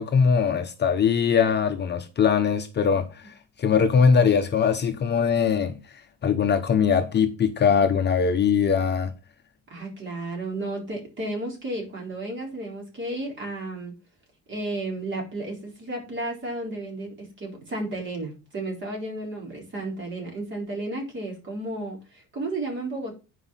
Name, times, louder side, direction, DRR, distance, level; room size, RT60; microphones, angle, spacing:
voice 1, 0.0-5.8 6.2-9.1, left 6 dB, 35° left, 0.9 m, -21 dB
voice 2, 9.7-13.9 14.5-23.1, right 2 dB, 35° right, 4.2 m, -33 dB
10.0 x 5.0 x 5.7 m
cardioid pair, 170°, 32 cm